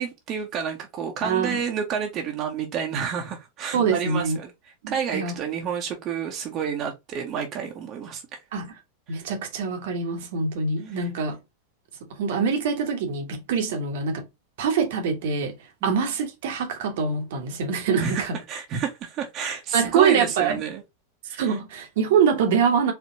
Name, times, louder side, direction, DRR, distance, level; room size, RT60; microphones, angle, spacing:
voice 1, 0.0-4.5 4.9-8.2 9.1-9.2 10.9-11.1 15.8-16.0 18.0-20.8 21.3-21.6, right 7 dB, 35° right, 1.0 m, -30 dB
voice 2, 1.2-1.6 3.7-4.4 4.8-5.3 8.5-8.7 9.1-11.4 12.2-14.2 14.6-15.5 15.8-18.4 19.7-20.6 21.4-22.9, right 6 dB, 55° right, 1.2 m, -24 dB
4.5 x 3.4 x 2.7 m
figure-of-eight pair, 90°, 0 cm